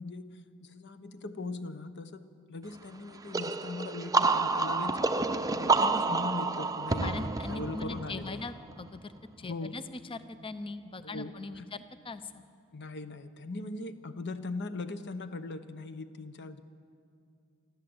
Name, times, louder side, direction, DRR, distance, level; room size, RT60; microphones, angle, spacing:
voice 1, 0.0-8.4 9.4-9.8 11.0-11.7 12.7-16.6, left 3 dB, 55° left, 10 dB, 1.1 m, -40 dB
sound 1, 3.3-8.9, right 3 dB, 15° right, 0.6 m, -29 dB
voice 2, 7.0-12.4, left 3 dB, 25° left, 12 dB, 0.7 m, -41 dB
25.0 x 14.0 x 8.0 m, 2.4 s
head